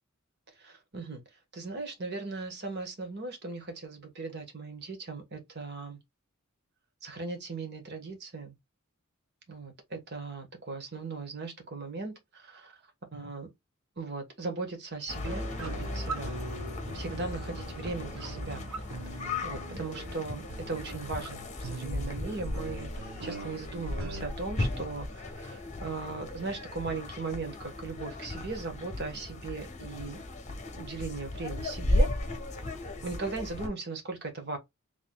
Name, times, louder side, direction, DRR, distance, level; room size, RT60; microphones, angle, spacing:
voice 1, 0.6-1.2 1.5-6.0 7.0-8.5 9.5-12.7 13.1-13.5 14.0-16.4 16.9-18.6 19.4-30.2 30.7-32.1 33.0-34.6, right 3 dB, 55° right, 1.4 m, -38 dB
sound 1, 15.1-33.7, left 1 dB, 35° left, 1.1 m, -35 dB
sound 2, 15.2-24.2, right 3 dB, 75° right, 0.8 m, -43 dB
4.1 x 3.5 x 2.3 m
head